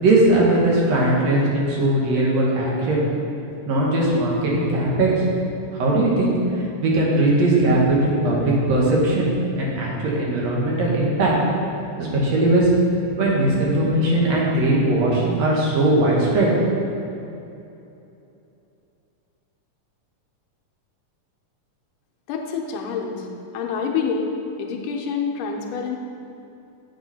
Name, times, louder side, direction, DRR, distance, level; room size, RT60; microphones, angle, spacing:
voice 1, 0.0-3.1 3.7-5.3 5.8-6.4 6.8-11.3 12.0-12.7 13.2-16.5, right 1 dB, 60° right, -4 dB, 2.5 m, -19 dB
voice 2, 22.3-23.3 23.5-24.3 24.6-26.0, left 5 dB, 90° left, 1 dB, 2.4 m, -27 dB
8.3 x 7.7 x 4.2 m, 2.8 s
omnidirectional pair, 3.7 m